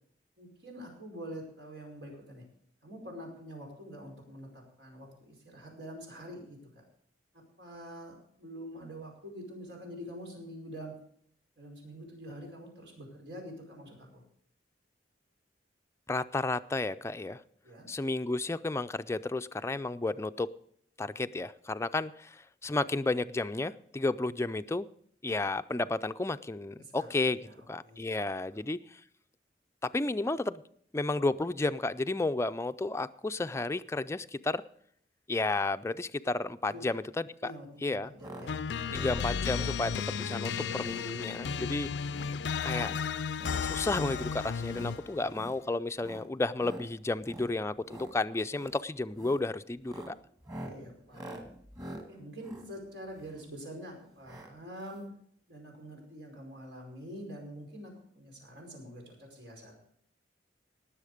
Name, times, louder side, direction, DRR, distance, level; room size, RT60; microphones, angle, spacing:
voice 1, 0.4-2.4 2.8-6.6 7.3-10.9 11.6-14.2 17.6-17.9 26.8-27.1 27.4-27.5 27.8-28.0 28.5-28.6 36.7-36.8 37.4-39.0 45.2-45.3 50.6-51.4 52.1-55.0 55.5-59.7, equal, 85° right, 1 dB, 5.1 m, -46 dB
voice 2, 16.1-17.4 17.9-20.5 21.0-24.9 25.2-27.4 27.7-29.0 29.8-30.6 30.9-34.6 35.3-37.5 37.8-38.1 38.9-42.2 42.6-42.9 43.6-50.2, left 2 dB, 15° left, 11 dB, 0.4 m, -32 dB
sound 1, 38.2-38.5 38.8-39.1 39.5-39.8 40.1-40.4 40.8-41.1 41.4-41.7 42.0-42.4 42.7-43.6 44.0-44.3 44.7-44.9 45.3-45.6 46.0-46.3 46.6-46.9 47.2-47.5 47.8-48.1 48.5-48.8 49.1-49.4 49.8-53.5 54.2-54.5 54.8-54.9 55.1-55.2, right 1 dB, 25° right, 2.0 m, -46 dB
sound 2, 38.5-45.2, left 6 dB, 80° left, 0.4 m, -34 dB
19.0 x 7.3 x 5.0 m, 0.65 s
head